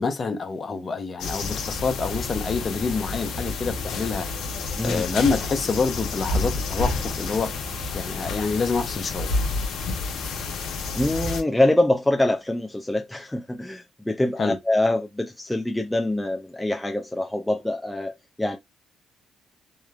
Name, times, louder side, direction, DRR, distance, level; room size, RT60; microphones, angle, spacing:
voice 1, 0.0-4.3 4.8-7.5 7.9-9.3 14.4-14.6, left 4 dB, 40° left, 0.7 m, -27 dB
sound 1, 1.2-11.4, left 3 dB, 80° left, 0.7 m, -29 dB
voice 2, 10.9-18.6, left 1 dB, 10° left, 0.3 m, -24 dB
3.0 x 2.0 x 2.3 m
cardioid pair, 90°, 0 cm